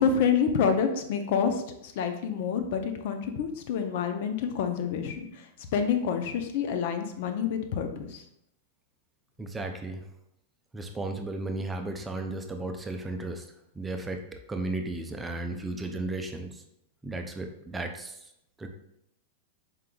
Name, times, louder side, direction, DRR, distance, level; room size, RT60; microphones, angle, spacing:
voice 1, 0.0-5.3 5.7-8.2, left 6 dB, 60° left, 7 dB, 0.6 m, -27 dB
voice 2, 9.4-10.0 10.7-13.5 13.7-14.2 14.5-16.6 17.0-18.2 18.6-18.7, right 2 dB, 10° right, 4 dB, 0.5 m, -34 dB
4.6 x 3.6 x 2.3 m, 0.79 s
hypercardioid pair, 120°, 0 cm